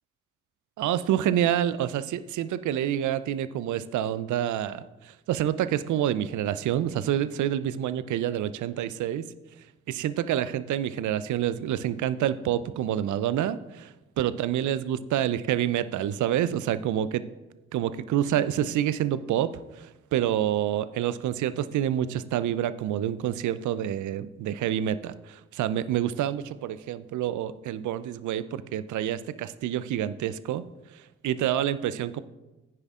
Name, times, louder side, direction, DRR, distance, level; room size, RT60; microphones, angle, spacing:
voice 1, 0.8-9.3 9.9-17.2 17.7-30.6 30.9-32.2, right 11 dB, 55° right, 15 dB, 0.6 m, -28 dB
15.0 x 9.6 x 2.5 m, 1.0 s
hypercardioid pair, 40°, 35 cm